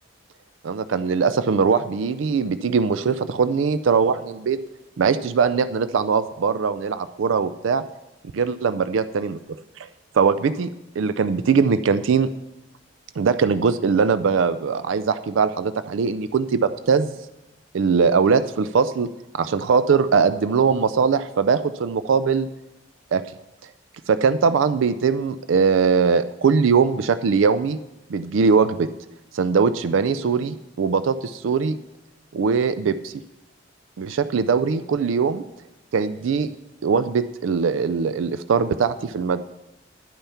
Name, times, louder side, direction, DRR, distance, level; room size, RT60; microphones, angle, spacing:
voice 1, 0.6-4.6 5.0-7.8 8.3-9.4 10.1-10.7 11.0-12.3 13.2-17.1 17.7-19.1 19.3-22.5 23.1-23.2 24.1-27.8 28.1-28.9 29.3-31.8 32.3-33.1 34.0-35.4 35.9-36.5 36.8-39.5, right 5 dB, 85° right, 13 dB, 0.4 m, -21 dB
10.5 x 8.9 x 5.7 m, 0.95 s
head